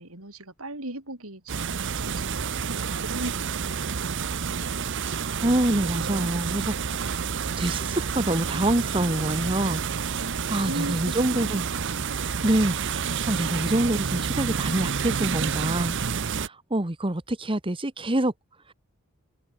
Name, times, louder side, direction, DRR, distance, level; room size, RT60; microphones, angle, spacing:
voice 1, 0.0-5.0 10.2-12.3, right 1 dB, 70° right, 5.3 m, -39 dB
sound 1, 1.5-16.5, right 6 dB, 55° right, 0.8 m, -29 dB
voice 2, 5.4-7.3 7.6-9.8 10.5-11.6 12.4-15.9 16.2-18.3, right 1 dB, 25° right, 1.3 m, -26 dB
head